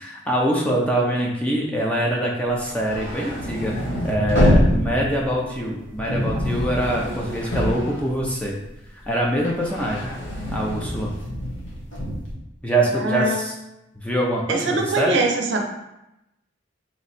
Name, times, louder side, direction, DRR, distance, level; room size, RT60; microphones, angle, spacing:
voice 1, 0.0-3.7 4.0-8.6 9.1-10.1 10.5-11.1 12.6-13.5 13.9-15.2, right 1 dB, 5° left, -2 dB, 0.5 m, -24 dB
sound 1, 2.6-8.7 9.0-12.3, equal, 70° left, 1.2 m, -25 dB
voice 2, 12.9-13.4 14.5-15.6, right 2 dB, 65° right, 2 dB, 0.6 m, -22 dB
3.5 x 3.1 x 4.1 m, 0.89 s
head